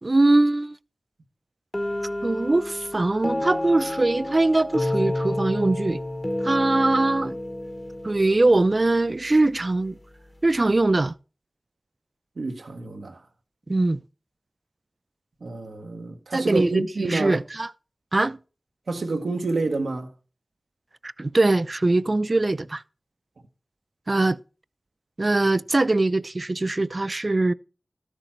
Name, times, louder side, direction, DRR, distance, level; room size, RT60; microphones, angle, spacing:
voice 1, 0.0-0.8 2.2-6.0 6.4-7.4 8.0-10.0 10.4-11.1 13.7-14.0 16.3-17.7 18.1-18.4 21.0-22.8 24.1-24.4 25.2-27.5, right 2 dB, 45° right, 0.4 m, -22 dB
sound 1, 1.7-9.5, left 1 dB, 30° left, 1.5 m, -30 dB
voice 2, 12.4-13.2 15.4-17.4 18.9-20.1, right 3 dB, 85° right, 1.1 m, -28 dB
13.0 x 6.6 x 4.4 m
wide cardioid pair, 45°, 0 cm